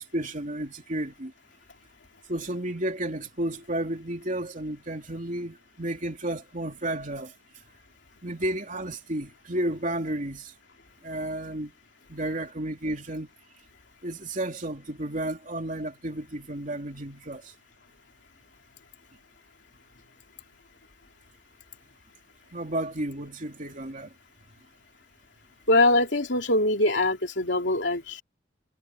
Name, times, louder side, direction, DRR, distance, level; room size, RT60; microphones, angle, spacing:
voice 1, 0.0-1.3 2.3-7.3 8.2-10.5 11.0-11.7 12.1-13.3 14.0-17.5 22.5-24.1, right 1 dB, 45° right, 3.2 m, -32 dB
voice 2, 25.7-28.2, left 2 dB, 70° left, 3.3 m, -23 dB
head